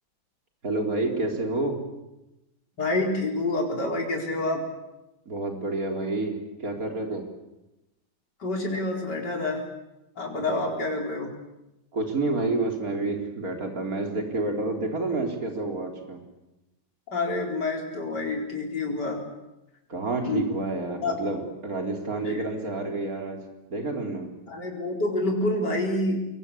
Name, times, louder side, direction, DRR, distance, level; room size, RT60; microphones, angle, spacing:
voice 1, 0.6-1.8 5.3-7.3 10.5-10.6 11.9-16.2 19.9-23.4 23.7-24.3, right 2 dB, 55° right, 3 dB, 4.3 m, -29 dB
voice 2, 2.8-4.6 8.4-9.6 10.2-11.3 17.1-19.2 20.2-20.5 21.0-21.2 22.2-22.4 24.5-26.2, left 2 dB, 70° left, 0 dB, 4.9 m, -27 dB
25.5 x 22.5 x 8.6 m, 0.96 s
omnidirectional pair, 1.9 m